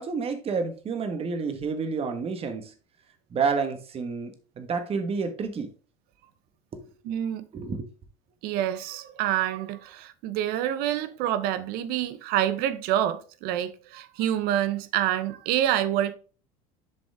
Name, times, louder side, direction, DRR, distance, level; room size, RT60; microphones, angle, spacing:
voice 1, 0.0-2.7 3.3-5.7 6.7-6.8 7.5-7.9, right 5 dB, 35° right, 1.5 m, -29 dB
voice 2, 7.0-7.4 8.4-16.1, right 11 dB, 65° right, 0.9 m, -27 dB
7.1 x 5.3 x 3.6 m
supercardioid pair, 110°, 17 cm